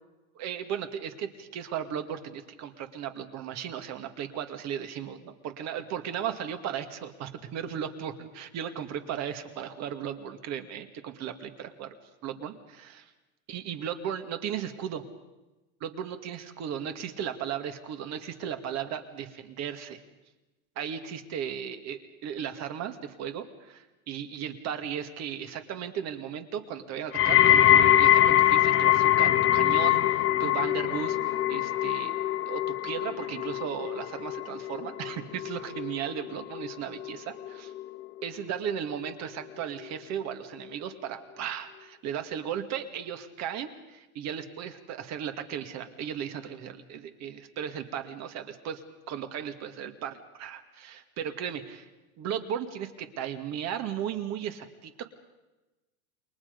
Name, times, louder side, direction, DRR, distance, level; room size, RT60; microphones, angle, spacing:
voice 1, 0.4-12.0 12.2-13.1 13.5-15.1 15.8-20.0 20.8-32.1 32.5-37.7 38.2-48.8 49.1-51.9 52.2-55.1, right 9 dB, 35° right, 8 dB, 2.0 m, -36 dB
sound 1, 27.1-38.3 38.6-39.1 39.8-39.9, left 12 dB, 30° left, 1.2 m, -24 dB
28.5 x 22.5 x 5.2 m, 1.1 s
supercardioid pair, 130°, 44 cm